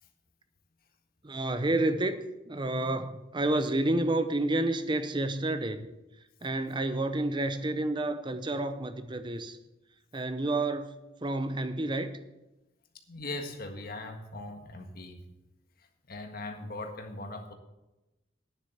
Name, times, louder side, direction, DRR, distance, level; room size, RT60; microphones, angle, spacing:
voice 1, 1.2-2.2 2.5-5.9 6.4-9.6 10.1-10.9 11.2-12.1, right 2 dB, 25° right, 0.7 m, -29 dB
voice 2, 13.1-15.2 15.8-17.5, left 2 dB, 50° left, 1.6 m, -40 dB
9.8 x 7.4 x 7.9 m
head